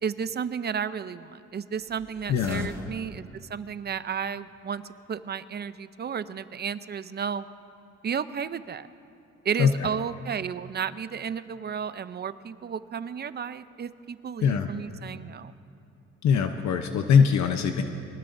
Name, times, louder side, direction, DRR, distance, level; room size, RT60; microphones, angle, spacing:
voice 1, 0.0-4.8 5.1-7.5 8.0-8.9 9.4-15.5, right 7 dB, 35° right, 13 dB, 0.6 m, -33 dB
sound 1, 1.8-3.6, right 1 dB, 10° right, 1.7 m, -45 dB
voice 2, 2.3-2.7 9.6-9.7 14.4-14.7 16.2-17.8, left 7 dB, 65° left, 6 dB, 0.8 m, -22 dB
24.0 x 18.5 x 2.7 m, 2.8 s
cardioid pair, 90°, 30 cm